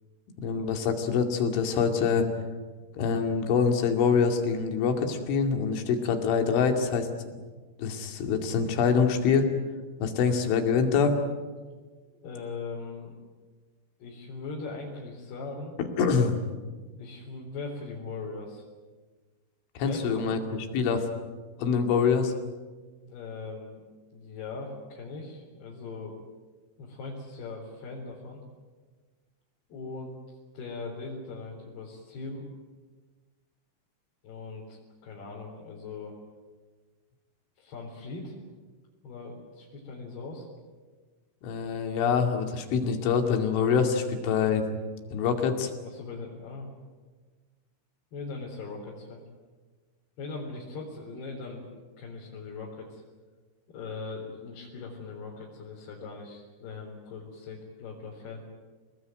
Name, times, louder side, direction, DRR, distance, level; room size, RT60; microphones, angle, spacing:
voice 1, 0.4-2.3 2.9-7.1 7.8-9.5 10.0-11.2 16.0-16.4 19.8-20.4 20.7-21.1 21.6-22.3 41.4-44.6 45.1-45.7, left 6 dB, 85° left, 5 dB, 4.9 m, -25 dB
voice 2, 12.2-13.1 14.0-15.7 17.0-18.6 19.8-20.3 23.1-23.8 24.1-26.1 26.8-28.4 29.7-32.5 34.2-34.8 35.0-36.1 37.6-38.4 39.0-40.5 45.8-46.7 48.1-49.2 50.2-51.7 52.0-53.0 53.7-58.4, left 3 dB, 60° left, -4 dB, 5.8 m, -40 dB
28.5 x 19.5 x 9.3 m, 1.4 s
omnidirectional pair, 5.3 m